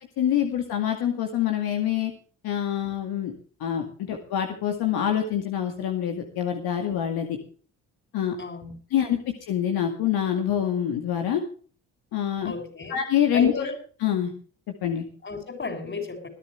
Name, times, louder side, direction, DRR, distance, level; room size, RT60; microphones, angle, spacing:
voice 1, 0.2-2.1 2.4-3.3 3.6-7.4 8.1-8.4 8.9-9.2 9.5-11.4 12.1-12.5 12.9-13.7 14.0-14.3 14.8-15.0, left 10 dB, 75° left, 4 dB, 2.2 m, -25 dB
voice 2, 8.4-8.7 12.4-13.0 13.3-13.7 15.2-16.3, left 3 dB, 30° left, 9 dB, 6.7 m, -33 dB
21.0 x 11.5 x 3.4 m, 0.41 s
supercardioid pair, 60°, 38 cm